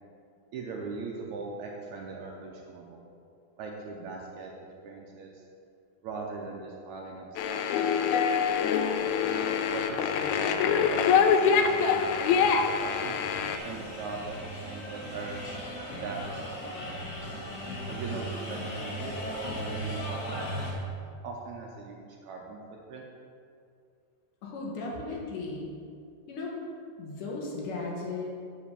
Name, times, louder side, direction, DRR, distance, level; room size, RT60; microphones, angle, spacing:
voice 1, 0.5-3.0 3.6-5.4 6.0-9.2 9.7-13.2 13.6-14.4 14.6-15.4 15.8-17.0 17.9-20.8 21.2-22.6 22.9-23.1, right 4 dB, 75° right, 0 dB, 1.8 m, -41 dB
sound 1, 7.4-13.6, left 6 dB, 90° left, 1.6 m, -25 dB
sound 2, 9.0-20.7, equal, 45° left, 1.2 m, -38 dB
voice 2, 24.4-25.7 26.3-26.5 27.0-28.2, left 3 dB, 70° left, -2 dB, 2.7 m, -36 dB
7.9 x 5.0 x 6.8 m, 2.3 s
omnidirectional pair, 3.9 m